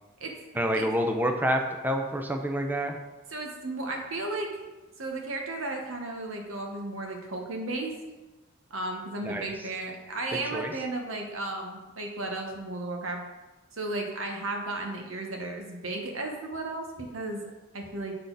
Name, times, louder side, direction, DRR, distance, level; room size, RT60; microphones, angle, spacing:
voice 1, 0.5-3.0 9.2-9.5 10.5-10.7, equal, 10° right, 4 dB, 0.5 m, -28 dB
voice 2, 3.3-4.6 5.0-7.9 8.7-13.2 13.7-18.1, right 2 dB, 90° right, 2 dB, 1.3 m, -34 dB
6.6 x 6.1 x 4.0 m, 1.1 s
head